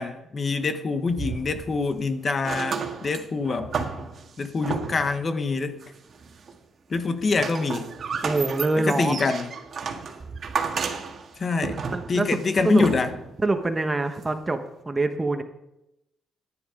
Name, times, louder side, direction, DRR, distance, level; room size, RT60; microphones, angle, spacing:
voice 1, 0.0-3.7 4.4-5.8 6.9-7.9 8.8-9.5 11.4-11.8 12.1-13.1, left 4 dB, 40° left, 9 dB, 1.0 m, -25 dB
sound 1, 1.1-2.0 2.3-5.2 5.8-6.6 6.9-13.4 14.2-14.3, right 5 dB, 50° right, 1.6 m, -33 dB
voice 2, 8.2-9.2 11.9-12.4 12.6-12.8 13.4-15.4, right 2 dB, 20° right, 7 dB, 1.2 m, -25 dB
10.5 x 10.0 x 5.0 m, 0.87 s
cardioid pair, 90°, 0 cm